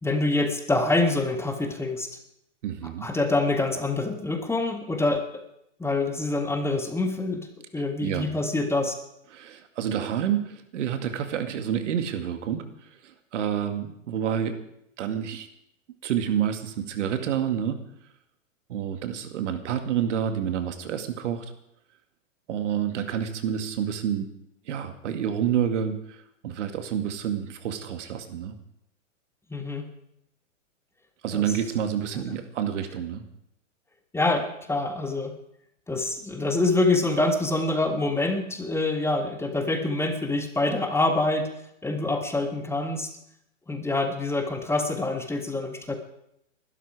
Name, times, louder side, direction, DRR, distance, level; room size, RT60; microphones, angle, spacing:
voice 1, 0.0-2.1 3.0-5.4 5.8-7.5 7.7-8.9 29.5-29.9 31.3-31.5 34.1-35.3 35.9-41.5 41.8-43.1 43.7-46.0, left 2 dB, 5° left, 5 dB, 1.7 m, -26 dB
voice 2, 2.6-3.1 8.0-8.3 9.3-14.6 15.0-15.5 16.0-17.8 18.7-21.5 22.5-24.3 24.7-28.5 31.2-33.2, right 9 dB, 65° right, 8 dB, 2.2 m, -28 dB
20.5 x 12.5 x 4.9 m, 0.77 s
hypercardioid pair, 120°, 38 cm